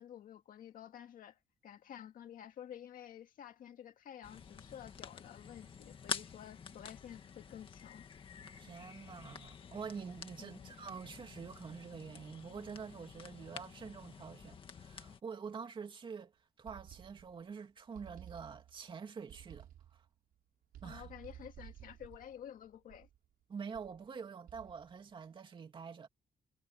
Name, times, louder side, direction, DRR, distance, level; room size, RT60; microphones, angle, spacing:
voice 1, 0.0-8.0 10.4-10.8 20.8-23.1, left 10 dB, 65° left, 2.0 m, -51 dB
sound 1, 4.2-15.2, left 6 dB, 35° left, 1.9 m, -48 dB
voice 2, 8.6-16.3 16.6-19.7 19.9-20.0 20.8-21.1 23.5-26.1, right 6 dB, 35° right, 2.5 m, -46 dB
sound 2, 16.7-17.5 18.0-18.9 19.3-20.1 20.7-23.3 23.7-24.1 24.5-25.0, right 11 dB, 80° right, 5.8 m, -55 dB
cardioid pair, 180°, 15 cm